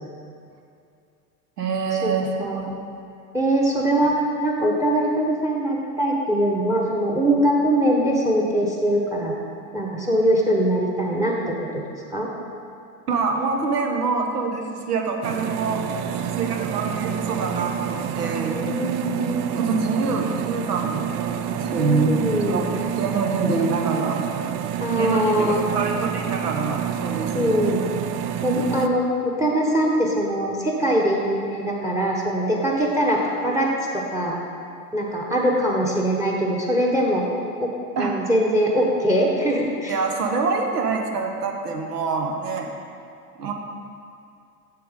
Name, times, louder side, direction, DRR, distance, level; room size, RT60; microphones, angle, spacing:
voice 1, 1.6-2.8 13.1-15.9 16.4-18.6 19.6-22.7 23.0-24.2 25.0-27.7 38.0-38.1 39.9-42.7 43.4-43.5, right 4 dB, 85° right, 2 dB, 1.0 m, -25 dB
voice 2, 2.4-2.7 3.3-4.1 4.4-9.3 9.7-11.8 12.1-12.3 18.5-19.6 21.8-22.6 24.8-25.6 27.3-27.8 28.4-34.3 34.9-37.2 37.6-37.7 38.0-40.0, right 1 dB, 5° right, -1 dB, 0.9 m, -22 dB
sound 1, 15.2-28.9, right 9 dB, 45° right, 0.4 m, -28 dB
7.7 x 6.5 x 3.6 m, 2.4 s
hypercardioid pair, 85°, 46 cm